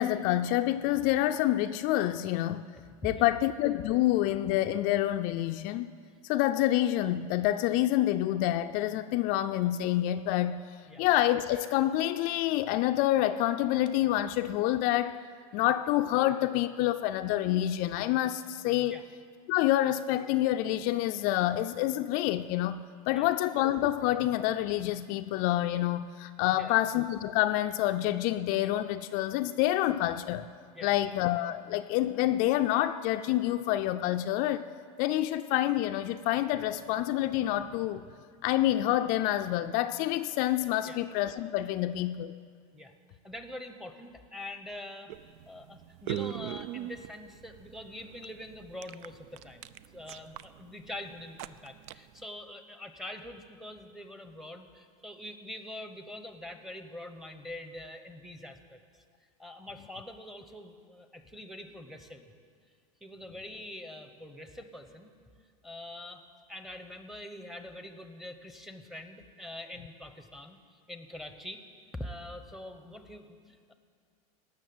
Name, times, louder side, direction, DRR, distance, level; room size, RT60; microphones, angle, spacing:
voice 1, 0.0-2.7 3.0-5.9 6.2-10.6 11.0-15.2 15.5-18.9 19.5-30.5 30.8-34.6 35.0-38.0 38.4-42.3, left 14 dB, 50° left, 7 dB, 0.4 m, -27 dB
voice 2, 43.2-45.1 45.5-59.0 59.4-62.3 63.0-65.1 65.6-66.2 66.5-70.6 70.9-71.6 71.9-73.7, left 1 dB, ahead, 7 dB, 0.9 m, -44 dB
sound 1, 45.1-52.3, right 12 dB, 60° right, 0.4 m, -41 dB
18.0 x 6.3 x 7.8 m, 2.1 s
supercardioid pair, 135°, 18 cm